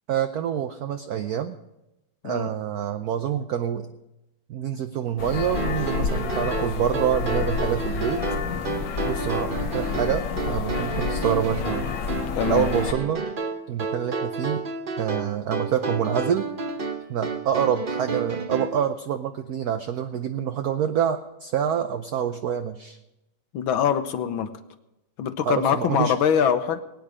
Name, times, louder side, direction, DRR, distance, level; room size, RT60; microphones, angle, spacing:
voice 1, 0.1-1.6 2.2-3.9 4.5-8.2 9.0-11.9 12.5-13.2 13.7-14.6 15.0-16.5 17.1-23.0 25.4-26.1, right 9 dB, 65° right, 9 dB, 1.0 m, -26 dB
sound 1, 5.2-12.9, left 6 dB, 60° left, 1.6 m, -29 dB
sound 2, 5.5-18.8, right 4 dB, 45° right, 0.7 m, -31 dB
voice 2, 12.4-12.7 23.5-24.5 25.2-26.8, left 8 dB, 80° left, 9 dB, 1.7 m, -23 dB
22.0 x 9.4 x 5.0 m, 0.93 s
omnidirectional pair, 2.2 m